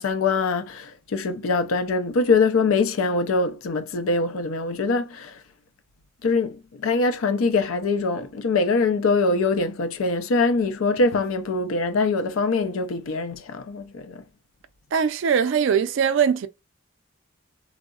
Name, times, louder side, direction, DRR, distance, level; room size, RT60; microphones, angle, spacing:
voice 1, 0.0-5.4 6.2-14.2, left 3 dB, 85° left, 0.4 m, -23 dB
voice 2, 14.9-16.5, right 7 dB, 65° right, 0.3 m, -21 dB
3.5 x 2.0 x 2.3 m
head